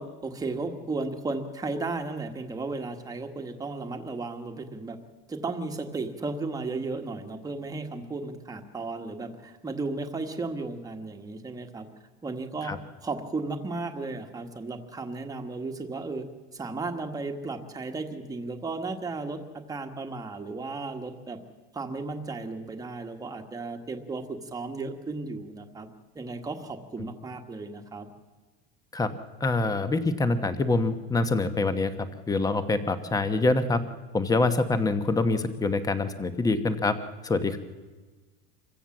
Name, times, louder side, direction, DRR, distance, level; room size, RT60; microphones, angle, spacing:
voice 1, 0.0-5.0 5.3-11.9 12.2-16.2 16.5-21.4 21.7-25.9 26.1-28.1, right 3 dB, 10° right, 4 dB, 1.5 m, -34 dB
voice 2, 29.4-31.9 32.3-33.8 34.1-36.9 37.2-37.6, left 3 dB, 10° left, 10 dB, 1.0 m, -25 dB
25.5 x 15.5 x 7.3 m, 1.3 s
supercardioid pair, 150°, 31 cm